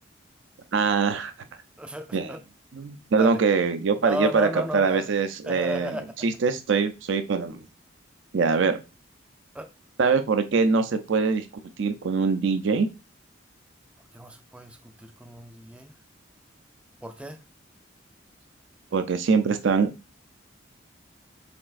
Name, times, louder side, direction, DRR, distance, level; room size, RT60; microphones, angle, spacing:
voice 1, 0.7-1.3 2.1-2.3 2.7-7.6 8.3-8.8 10.0-11.4 11.8-12.9 18.9-19.9, right 5 dB, 75° right, 0.5 m, -23 dB
voice 2, 1.8-2.4 3.2-3.4 4.0-5.1 5.5-6.0 9.5-9.7 14.1-15.9 17.0-17.4, equal, 5° right, 0.3 m, -33 dB
4.3 x 4.0 x 2.5 m
head